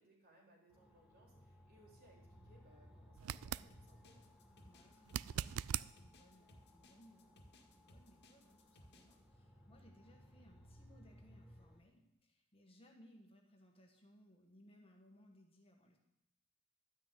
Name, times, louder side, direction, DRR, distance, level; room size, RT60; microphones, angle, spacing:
voice 1, 0.0-4.2, right 1 dB, 45° right, -1 dB, 3.9 m, -68 dB
sound 1, 0.7-11.8, equal, 5° right, 1.9 m, -63 dB
sound 2, 3.2-3.7 5.1-5.9 8.9-9.0, right 10 dB, 70° right, 0.3 m, -40 dB
sound 3, 3.7-9.2, left 1 dB, 50° left, 1.9 m, -63 dB
voice 2, 4.6-16.0, equal, 25° left, 2 dB, 1.6 m, -65 dB
12.0 x 6.3 x 9.1 m, 0.83 s
head